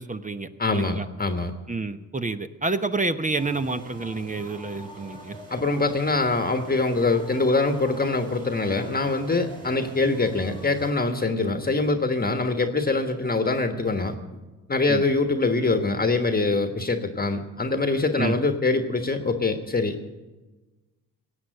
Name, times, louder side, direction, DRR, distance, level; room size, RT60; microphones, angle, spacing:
voice 1, 0.0-1.1 1.7-5.4 14.9-15.0 18.1-18.4, right 3 dB, 20° right, 10 dB, 0.9 m, -29 dB
voice 2, 0.6-1.5 5.5-14.1 14.7-20.1, left 3 dB, 20° left, 7 dB, 1.4 m, -24 dB
sound 1, 3.3-10.9, right 1 dB, 70° right, 3.9 m, -44 dB
17.0 x 8.1 x 7.8 m, 1.2 s
supercardioid pair, 55°, 40 cm